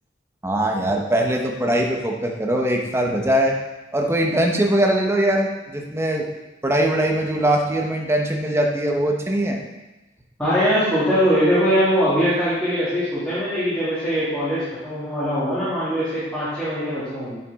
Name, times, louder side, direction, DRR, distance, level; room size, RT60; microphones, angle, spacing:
voice 1, 0.4-3.6 3.9-6.3 6.6-9.6, right 1 dB, 15° right, 1 dB, 1.0 m, -21 dB
voice 2, 10.4-17.4, equal, 5° left, -13 dB, 2.4 m, -21 dB
8.1 x 7.1 x 3.6 m, 1.1 s
head